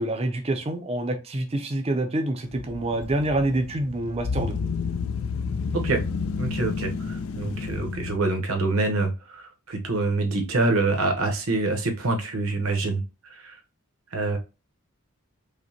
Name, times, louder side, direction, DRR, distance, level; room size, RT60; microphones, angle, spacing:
voice 1, 0.0-4.6, right 1 dB, 30° right, 5 dB, 0.5 m, -27 dB
sound 1, 2.4-8.2, left 5 dB, 70° left, 0.4 m, -31 dB
voice 2, 6.4-13.0 13.3-13.6 14.1-14.4, right 3 dB, 70° right, 3 dB, 0.9 m, -26 dB
5.1 x 2.1 x 2.8 m, 0.28 s
head